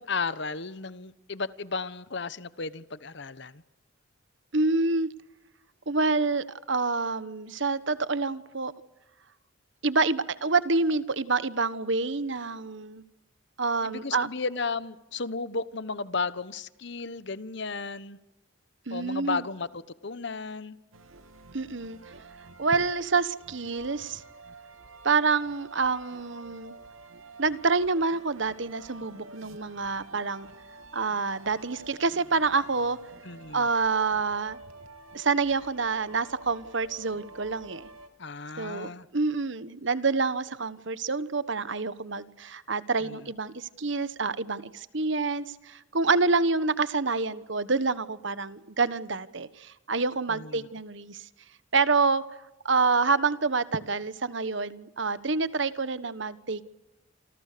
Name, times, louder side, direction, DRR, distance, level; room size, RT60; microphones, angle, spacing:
voice 1, 0.0-3.6 13.8-18.2 18.9-20.8 33.2-33.7 38.2-39.1 43.0-43.2 50.3-50.7, left 4 dB, 60° left, 16 dB, 1.2 m, -34 dB
voice 2, 4.5-5.1 5.9-8.7 9.8-13.0 13.6-14.3 18.9-19.4 21.5-22.0 22.6-24.2 25.0-26.7 27.4-30.5 30.9-33.0 33.5-34.6 35.1-37.9 38.6-51.2 51.7-52.2 52.6-56.6, right 4 dB, 60° right, 15 dB, 1.2 m, -27 dB
sound 1, 20.9-38.1, right 3 dB, 85° right, 3.1 m, -49 dB
28.5 x 25.5 x 6.8 m, 0.98 s
head